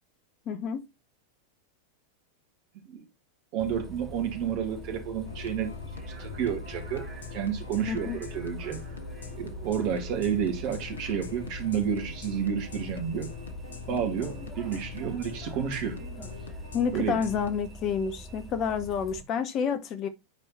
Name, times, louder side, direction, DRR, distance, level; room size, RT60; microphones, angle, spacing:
voice 1, 0.5-0.8 7.9-8.2 16.7-20.1, left 7 dB, 35° left, 1.1 m, -29 dB
voice 2, 3.5-5.7 6.2-7.1 7.3-8.8 9.3-13.3 13.9-16.0 16.9-17.1, right 8 dB, 45° right, 2.4 m, -30 dB
Bus, 3.6-19.2, right 1 dB, 5° right, 2.2 m, -44 dB
sound 1, 5.3-17.5, left 4 dB, 70° left, 1.1 m, -42 dB
9.3 x 4.8 x 4.2 m
figure-of-eight pair, 90°, 0 cm